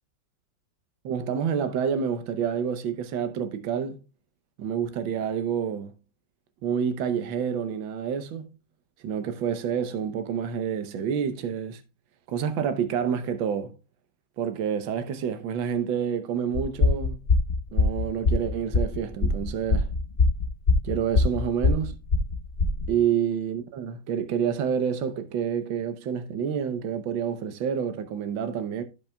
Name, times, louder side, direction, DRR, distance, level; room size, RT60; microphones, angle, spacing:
voice 1, 1.0-4.0 4.6-5.9 6.6-8.5 9.0-11.8 12.3-13.7 14.4-17.2 17.7-19.9 20.8-21.9 22.9-28.8, right 8 dB, 80° right, 1.6 m, -28 dB
sound 1, 16.5-22.9, left 3 dB, 40° left, 1.1 m, -23 dB
15.0 x 5.3 x 2.2 m
omnidirectional pair, 2.1 m